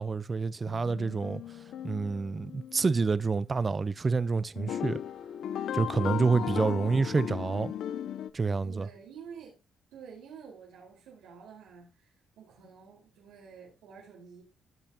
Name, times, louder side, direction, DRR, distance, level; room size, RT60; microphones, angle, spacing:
voice 1, 0.0-1.4 1.8-5.0 5.7-7.7 8.3-8.9, right 4 dB, 30° right, 0.7 m, -28 dB
sound 1, 0.7-3.0 4.6-8.3, left 10 dB, 75° left, 0.6 m, -36 dB
voice 2, 6.3-6.9 8.6-9.6 9.9-11.9 12.4-14.4, right 6 dB, 90° right, 4.5 m, -49 dB
16.5 x 5.6 x 2.9 m
cardioid pair, 90°, 0 cm